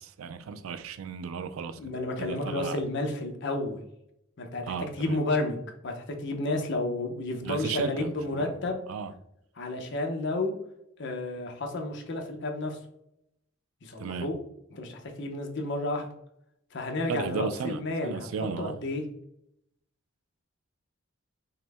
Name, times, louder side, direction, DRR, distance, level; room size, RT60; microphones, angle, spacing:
voice 1, 0.0-1.9 2.2-2.8 4.6-5.2 7.4-8.6 8.9-9.1 14.0-14.3 17.1-18.7, right 6 dB, 85° right, 0.4 m, -35 dB
voice 2, 1.8-3.8 4.4-8.8 9.6-10.5 11.0-12.8 13.8-14.4 14.7-16.1 16.7-18.3 18.6-19.0, left 2 dB, 60° left, 0.7 m, -31 dB
5.6 x 2.1 x 3.4 m
head